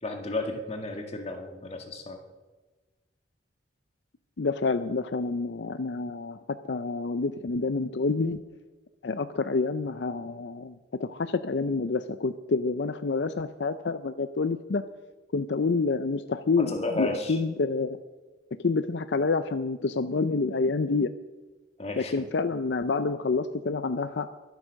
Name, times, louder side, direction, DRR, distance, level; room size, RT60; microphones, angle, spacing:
voice 1, 0.0-2.2 16.6-17.4 21.8-22.1, left 2 dB, 35° left, 4 dB, 1.9 m, -33 dB
voice 2, 4.4-8.4 9.0-14.8 15.3-18.0 18.6-21.1 22.0-24.3, left 4 dB, 70° left, 11 dB, 0.5 m, -28 dB
23.0 x 8.3 x 6.4 m, 1.2 s
head